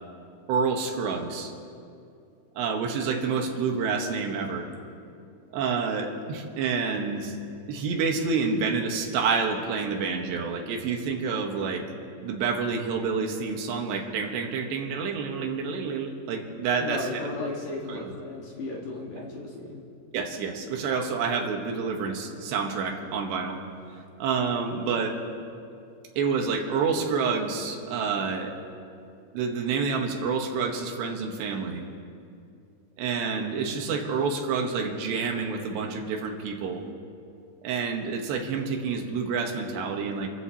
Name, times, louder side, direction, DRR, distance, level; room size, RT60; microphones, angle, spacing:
voice 1, 0.5-1.5 2.6-4.7 5.5-7.4 7.7-11.9 12.2-17.3 17.9-18.0 20.1-23.6 24.2-25.2 26.2-28.5 29.3-31.8 33.0-36.9 37.6-40.3, right 5 dB, 75° right, 3 dB, 3.3 m, -28 dB
voice 2, 16.8-19.9, left 2 dB, 60° left, -3 dB, 2.6 m, -35 dB
28.5 x 14.5 x 2.8 m, 2.4 s
omnidirectional pair, 5.1 m